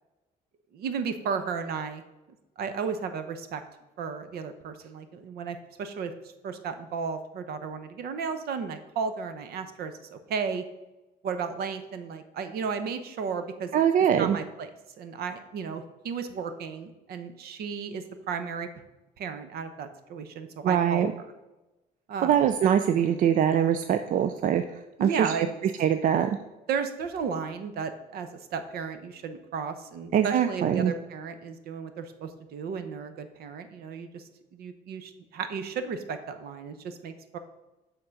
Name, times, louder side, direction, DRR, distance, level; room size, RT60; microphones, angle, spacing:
voice 1, 0.7-2.0 2.6-3.6 4.0-6.1 6.4-10.6 11.2-13.7 14.0-14.7 15.0-18.7 19.2-21.0 22.1-22.5 25.0-25.5 26.7-34.2 34.5-37.4, right 6 dB, 70° right, 9 dB, 0.8 m, -34 dB
voice 2, 13.7-14.4 20.6-21.1 22.2-24.6 25.0-25.3 25.8-26.3 30.1-30.9, right 9 dB, 50° right, 9 dB, 0.4 m, -23 dB
7.1 x 3.8 x 6.4 m, 1.0 s
cardioid pair, 110°, 17 cm